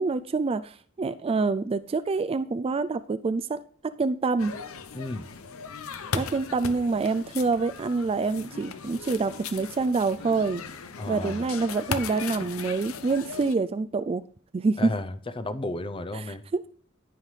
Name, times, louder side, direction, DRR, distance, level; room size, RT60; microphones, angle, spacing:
voice 1, 0.0-3.6 3.8-4.5 6.1-10.6 11.1-14.2 14.5-14.9 16.5-16.7, right 4 dB, 25° right, 12 dB, 0.3 m, -26 dB
Childre in a square (french), 4.4-13.5, left 5 dB, 75° left, 0.8 m, -37 dB
voice 2, 4.9-5.3 11.0-11.6 14.8-16.4, left 2 dB, 25° left, 11 dB, 0.6 m, -33 dB
17.0 x 5.7 x 3.3 m, 0.43 s
head